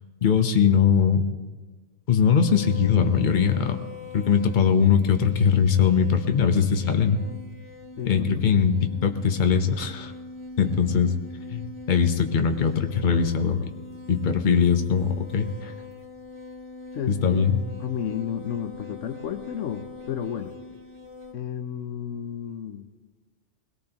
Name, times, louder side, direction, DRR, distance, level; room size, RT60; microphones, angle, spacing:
voice 1, 0.2-1.3 2.1-3.8 4.1-7.2 8.0-10.1 10.6-11.1 11.5-13.7 14.1-15.7 17.1-17.6, left 7 dB, 40° left, 6 dB, 1.0 m, -21 dB
sound 1, 2.4-21.3, left 3 dB, 45° right, 1.4 m, -42 dB
voice 2, 8.0-8.4 16.9-17.2 17.8-20.5 21.3-22.9, left 9 dB, 75° left, 9 dB, 1.1 m, -32 dB
21.5 x 17.5 x 3.0 m, 1.3 s
omnidirectional pair, 1.3 m